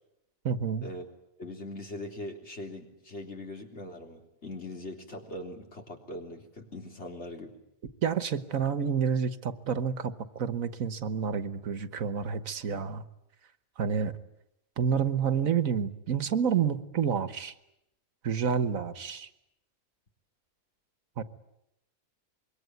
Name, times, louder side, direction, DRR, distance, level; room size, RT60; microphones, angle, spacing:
voice 1, 0.4-0.9 8.0-13.0 13.8-14.1 14.8-17.5 18.2-19.3 21.2-21.3, right 7 dB, 75° right, 12 dB, 1.6 m, -29 dB
voice 2, 1.4-7.5, left 1 dB, 55° left, 2 dB, 3.9 m, -41 dB
25.5 x 23.0 x 9.4 m, 0.84 s
omnidirectional pair, 1.4 m